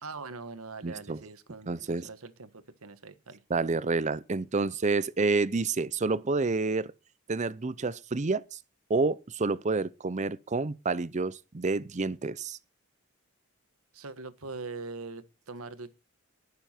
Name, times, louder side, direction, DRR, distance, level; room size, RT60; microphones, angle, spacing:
voice 1, 0.0-3.4 13.9-15.9, right 3 dB, 85° right, 1.4 m, -42 dB
voice 2, 0.8-1.2 1.7-2.1 3.5-6.9 7.3-8.6 8.9-12.6, right 3 dB, 35° right, 0.6 m, -29 dB
20.0 x 7.0 x 4.4 m
head